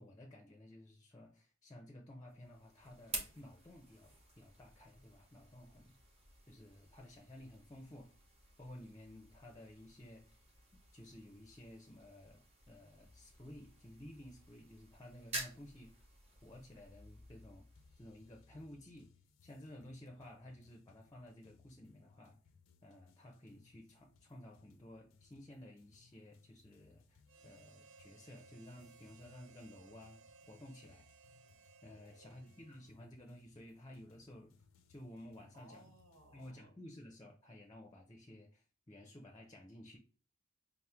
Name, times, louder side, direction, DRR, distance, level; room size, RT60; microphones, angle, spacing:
voice 1, 0.0-5.9 6.5-8.1 8.6-10.4 10.7-16.1 16.4-17.7 18.0-19.1 19.4-22.4 22.8-31.1 31.8-34.5 34.9-35.8 36.3-40.0, left 1 dB, 20° left, 0.6 m, -54 dB
sound 1, 2.3-19.2, right 2 dB, 30° right, 1.0 m, -52 dB
sound 2, 17.8-36.5, left 5 dB, 85° left, 0.5 m, -69 dB
Harmonica, 27.3-33.1, right 5 dB, 60° right, 0.3 m, -63 dB
voice 2, 31.9-32.4 35.5-36.7, right 1 dB, 80° right, 1.3 m, -62 dB
5.7 x 2.1 x 3.3 m
head